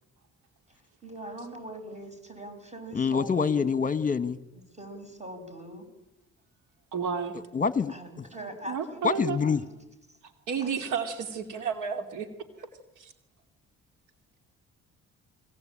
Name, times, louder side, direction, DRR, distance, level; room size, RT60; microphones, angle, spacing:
voice 1, 1.0-3.6 4.5-5.8 7.9-9.8 10.6-10.8, right 1 dB, 20° right, 6 dB, 7.5 m, -42 dB
voice 2, 2.9-4.4 7.5-8.2 9.0-9.6, left 5 dB, 25° left, 14 dB, 1.5 m, -26 dB
voice 3, 6.9-7.4 8.7-9.4 10.5-12.3 12.6-12.7 13.0-13.1, right 6 dB, 90° right, 8 dB, 2.7 m, -31 dB
29.5 x 21.5 x 8.9 m, 0.97 s
cardioid pair, 90°, 30 cm